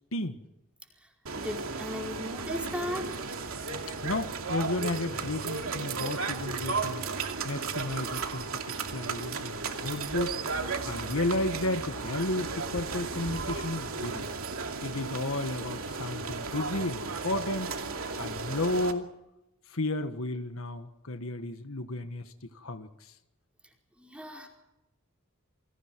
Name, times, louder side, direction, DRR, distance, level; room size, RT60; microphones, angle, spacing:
sound 1, 1.3-18.9, right 4 dB, 75° right, 2.7 m, -35 dB
voice 1, 1.4-3.2 24.0-24.5, equal, 5° right, 0 dB, 4.9 m, -36 dB
voice 2, 4.0-7.1 7.4-8.6 8.9-10.4 10.8-14.3 14.8-17.8 18.2-19.1 19.7-23.1, left 2 dB, 70° left, 8 dB, 1.6 m, -33 dB
29.0 x 24.5 x 4.7 m, 0.92 s
head